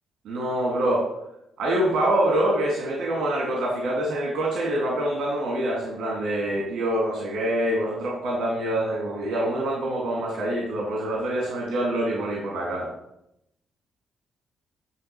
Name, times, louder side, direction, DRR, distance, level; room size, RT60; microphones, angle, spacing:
voice 1, 0.3-1.1 1.6-12.9, right 1 dB, 85° right, -3 dB, 2.3 m, -25 dB
9.8 x 3.8 x 6.8 m, 0.82 s
cardioid pair, 120°, 0 cm